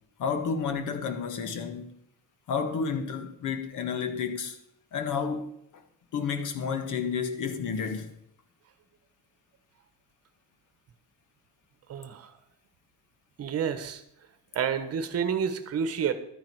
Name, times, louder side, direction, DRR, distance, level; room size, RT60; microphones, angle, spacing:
voice 1, 0.2-2.0 2.5-4.6 4.9-5.5 6.1-8.1, left 6 dB, 65° left, 1.5 m, -31 dB
voice 2, 11.9-12.3 13.4-14.0 14.5-16.1, right 7 dB, 45° right, 1.2 m, -29 dB
12.5 x 9.5 x 4.7 m
cardioid pair, 160°, 33 cm